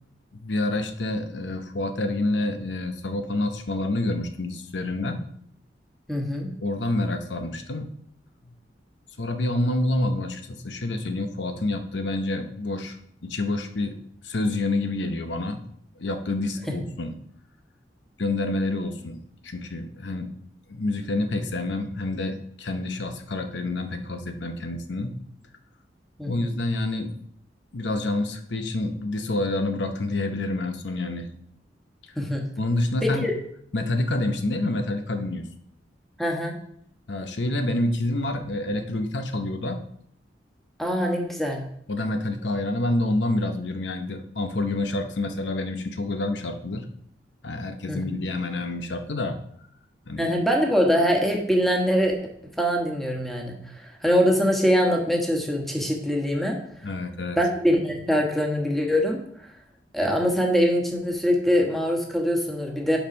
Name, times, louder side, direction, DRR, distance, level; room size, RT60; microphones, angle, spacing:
voice 1, 0.4-5.2 6.6-7.9 9.2-13.0 13.2-14.0 14.2-15.6 16.0-17.1 18.2-19.2 19.4-20.3 20.7-25.2 26.3-27.1 27.7-31.3 32.6-33.3 33.7-35.5 37.1-39.8 41.9-46.9 47.4-49.4 50.1-50.3 56.8-57.4, left 2 dB, 80° left, 7 dB, 0.8 m, -28 dB
voice 2, 6.1-6.5 26.2-26.5 32.1-32.4 33.0-33.3 36.2-36.5 40.8-41.6 47.9-48.0 50.2-52.1 52.6-56.6 57.4-59.2 59.9-63.0, equal, ahead, 0 dB, 1.3 m, -23 dB
7.1 x 5.5 x 5.2 m, 0.68 s
head